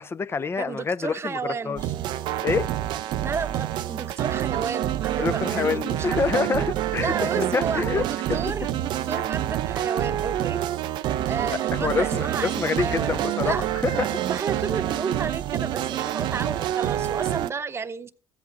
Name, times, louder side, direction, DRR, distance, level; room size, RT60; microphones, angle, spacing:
voice 1, 0.0-1.4 1.6-1.8 2.4-2.7 5.2-8.0 11.5-13.5 13.8-14.2, left 5 dB, 30° left, 0.7 m, -26 dB
voice 2, 0.6-1.8 3.2-6.4 7.0-10.6 11.2-13.7 14.0-18.1, right 5 dB, 30° right, 0.9 m, -32 dB
sound 1, 1.8-17.5, right 12 dB, 65° right, 0.5 m, -27 dB
14.0 x 8.3 x 3.9 m
supercardioid pair, 75°, 8 cm